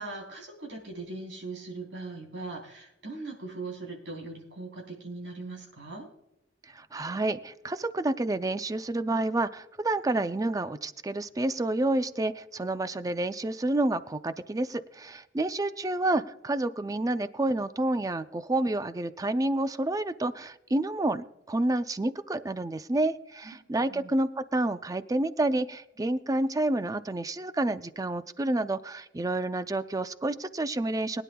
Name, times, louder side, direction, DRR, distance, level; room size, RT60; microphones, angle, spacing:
voice 1, 0.0-6.1 23.4-24.1, right 3 dB, 85° right, -1 dB, 3.7 m, -40 dB
voice 2, 6.7-31.2, right 2 dB, 20° right, 12 dB, 0.5 m, -29 dB
21.5 x 10.0 x 2.3 m, 0.88 s
head